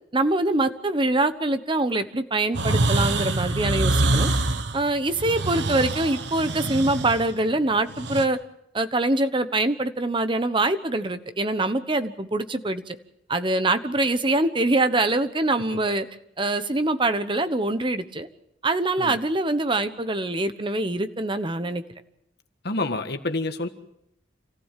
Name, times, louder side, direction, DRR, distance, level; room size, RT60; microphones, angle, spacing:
voice 1, 0.1-4.3 4.7-8.4 8.7-13.0 13.3-16.1 16.4-18.3 18.6-21.8, right 2 dB, 25° right, 10 dB, 1.1 m, -24 dB
sound 1, 2.5-8.2, right 2 dB, 65° right, 1.3 m, -25 dB
voice 2, 22.6-23.7, left 2 dB, 55° left, 7 dB, 1.7 m, -28 dB
27.5 x 15.5 x 7.5 m, 0.80 s
head